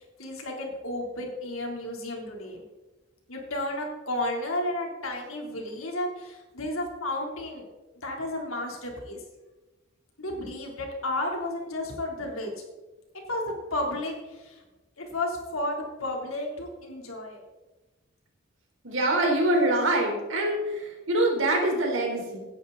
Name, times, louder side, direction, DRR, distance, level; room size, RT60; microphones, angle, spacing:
voice 1, 0.2-2.6 3.3-7.6 7.9-9.2 10.2-12.5 13.3-13.4 13.7-14.6 15.0-17.5, left 1 dB, 90° left, 0 dB, 3.5 m, -32 dB
voice 2, 18.8-22.5, right 1 dB, 70° right, 0 dB, 4.1 m, -25 dB
17.0 x 11.0 x 4.1 m, 1.1 s
head